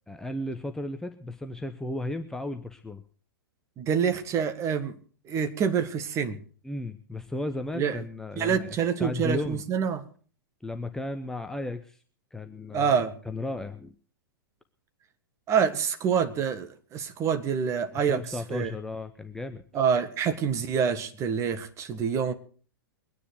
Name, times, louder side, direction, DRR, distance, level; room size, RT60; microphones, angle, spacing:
voice 1, 0.1-3.0 6.6-9.6 10.6-12.0 12.3-13.0 13.2-13.9 17.9-19.6, left 1 dB, 5° left, 7 dB, 0.9 m, -34 dB
voice 2, 3.8-4.9 5.3-6.4 7.7-8.0 8.4-10.1 12.7-13.2 15.5-18.7 19.7-22.3, right 7 dB, 25° right, 9 dB, 1.7 m, -26 dB
23.0 x 10.0 x 4.7 m, 0.42 s
figure-of-eight pair, 105°, 12 cm